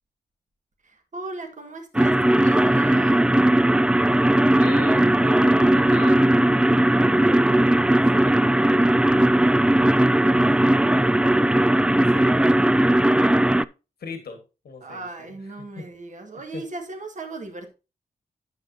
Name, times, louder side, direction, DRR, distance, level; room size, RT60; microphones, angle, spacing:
voice 1, 0.8-3.2 14.8-17.7, right 2 dB, 50° right, 1.7 m, -37 dB
sound 1, 1.9-13.6, right 1 dB, 5° right, 0.3 m, -18 dB
voice 2, 4.4-9.6 10.4-12.6 13.1-13.4 14.0-14.4 14.6-15.3 15.8-15.9 16.5-16.6, left 4 dB, 75° left, 1.6 m, -40 dB
9.5 x 6.6 x 2.7 m
cardioid pair, 45°, 16 cm